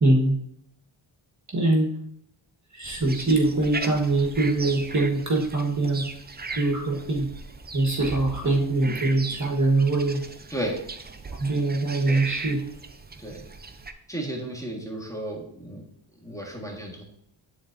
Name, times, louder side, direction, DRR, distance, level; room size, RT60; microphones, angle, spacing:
voice 1, 0.0-0.4 1.5-1.9 2.7-6.1 6.6-7.3 7.7-10.2 11.4-12.6, right 2 dB, 35° right, -1 dB, 1.4 m, -23 dB
sound 1, 2.8-13.9, right 3 dB, 20° right, 0.5 m, -38 dB
voice 2, 14.1-15.8 16.2-17.0, right 1 dB, 5° left, -2 dB, 1.6 m, -33 dB
10.5 x 3.9 x 2.6 m, 0.71 s
cardioid pair, 65°, 50 cm